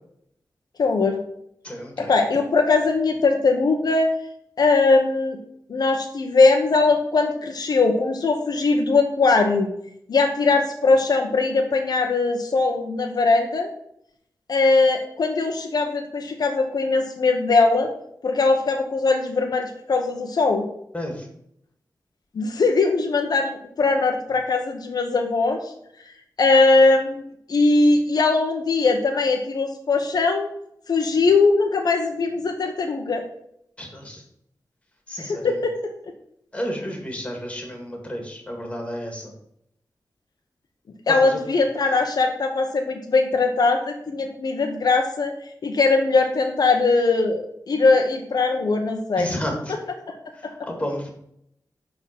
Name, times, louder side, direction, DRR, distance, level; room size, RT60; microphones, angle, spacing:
voice 1, 0.8-1.2 2.0-4.1 4.6-5.4 5.7-9.7 10.1-13.7 14.5-17.9 18.2-20.6 22.3-25.7 26.4-30.5 30.9-33.2 35.2-35.7 41.1-45.3 45.6-49.3 50.1-50.2, left 3 dB, 70° left, 3 dB, 1.0 m, -20 dB
voice 2, 1.6-2.1 20.9-21.3 33.8-34.2 35.1-35.6 36.5-39.3 41.1-41.4 41.9-42.0 49.2-49.8 50.3-51.1, equal, 15° left, 2 dB, 2.0 m, -31 dB
10.5 x 3.9 x 5.9 m, 0.73 s
wide cardioid pair, 145°, 7 cm